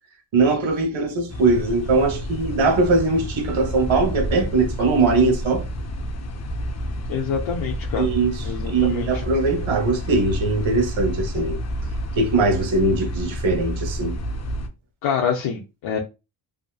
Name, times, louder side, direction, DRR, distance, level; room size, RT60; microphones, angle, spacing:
voice 1, 0.3-5.7 8.0-11.6 12.2-14.2, right 3 dB, 65° right, 1.1 m, -21 dB
sound 1, 1.3-14.7, equal, 35° left, 0.5 m, -29 dB
voice 2, 7.1-8.1 8.4-9.2 15.0-16.0, left 7 dB, 70° left, 0.8 m, -26 dB
2.8 x 2.5 x 2.3 m
cardioid pair, 70°, 50 cm